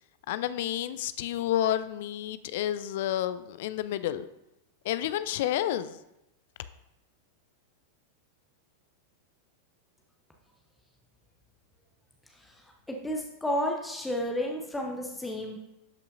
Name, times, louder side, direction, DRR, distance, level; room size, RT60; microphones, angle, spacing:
voice 1, 0.3-4.2 4.9-6.0, left 12 dB, 55° left, 14 dB, 0.3 m, -30 dB
voice 2, 12.9-15.6, left 1 dB, 5° left, 1 dB, 0.8 m, -32 dB
12.0 x 5.4 x 2.6 m, 0.89 s
figure-of-eight pair, 90°, 0 cm